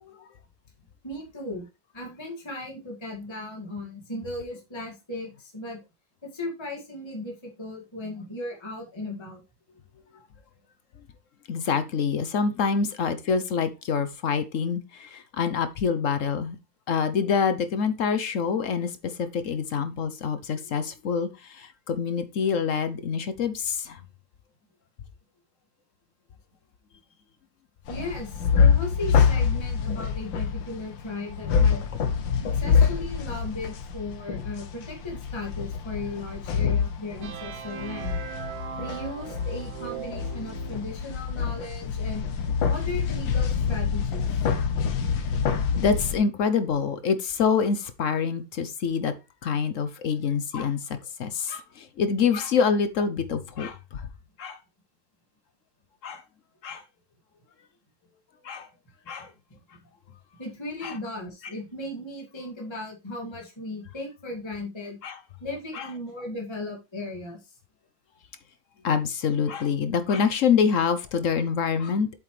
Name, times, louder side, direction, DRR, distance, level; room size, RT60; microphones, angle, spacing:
voice 1, 1.0-1.7 1.9-5.8 6.2-9.4 27.9-31.8 32.4-38.2 38.8-42.3 42.6-44.3 60.4-65.0 65.4-67.5, left 2 dB, 15° left, 2.1 m, -36 dB
voice 2, 11.5-16.6 16.9-24.0 45.8-49.1 49.4-54.1 54.4-54.6 56.0-56.2 56.6-56.8 58.4-58.7 59.1-59.3 60.8-60.9 65.0-65.2 65.7-65.9 68.8-72.2, left 6 dB, 60° left, 0.9 m, -26 dB
sound 1, 27.9-46.2, left 6 dB, 80° left, 1.8 m, -26 dB
sound 2, 37.2-41.0, right 10 dB, 60° right, 1.1 m, -39 dB
8.1 x 7.4 x 3.2 m
omnidirectional pair, 2.0 m